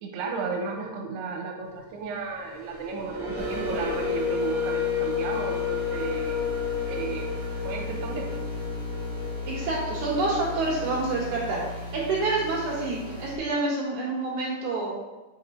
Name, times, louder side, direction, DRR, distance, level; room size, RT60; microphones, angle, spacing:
voice 1, 0.0-6.4 6.9-7.3 7.6-8.3, right 4 dB, 90° right, 1 dB, 2.8 m, -33 dB
sound 1, 2.5-10.9, left 6 dB, 70° right, 0.6 m, -32 dB
sound 2, 3.4-13.3, left 2 dB, 85° left, 1.0 m, -36 dB
voice 2, 9.5-14.9, right 3 dB, 55° right, -7 dB, 3.0 m, -28 dB
8.0 x 5.5 x 2.7 m, 1.2 s
omnidirectional pair, 4.7 m